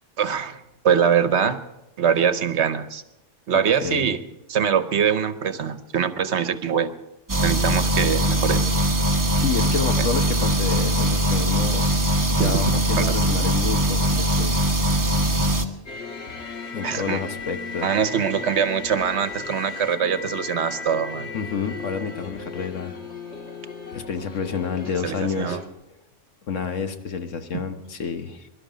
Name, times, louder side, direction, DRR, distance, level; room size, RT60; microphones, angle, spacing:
voice 1, 0.2-1.6 2.0-3.0 3.5-4.2 4.5-6.9 7.4-8.7 10.0-10.1 12.4-12.5 13.0-13.1 16.8-17.2 17.8-21.3 25.0-25.6, right 7 dB, 65° right, 12 dB, 1.2 m, -23 dB
voice 2, 3.5-4.1 9.4-11.9 12.3-14.7 16.7-17.9 21.3-23.0 23.9-25.6 26.5-28.5, left 6 dB, 85° left, 7 dB, 1.6 m, -29 dB
sound 1, 7.3-15.7, right 1 dB, 15° right, 1.1 m, -21 dB
sound 2, 15.9-25.7, left 4 dB, 65° left, 1.8 m, -36 dB
23.0 x 12.0 x 5.1 m, 0.94 s
omnidirectional pair, 1.3 m